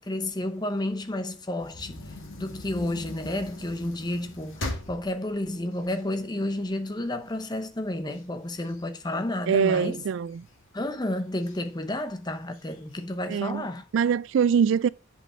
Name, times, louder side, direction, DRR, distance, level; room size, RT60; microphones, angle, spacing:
voice 1, 0.0-2.0 2.4-10.0 10.7-13.9, left 1 dB, 20° left, 0.8 m, -31 dB
sound 1, 1.6-6.8 7.3-7.4 7.7-9.8 10.3-10.8 11.4-11.6 11.8-11.9 12.4-13.0, left 1 dB, 80° left, 1.9 m, -40 dB
voice 2, 9.5-10.4 13.3-13.6 13.9-14.9, right 7 dB, 70° right, 0.3 m, -23 dB
7.6 x 5.6 x 4.3 m
head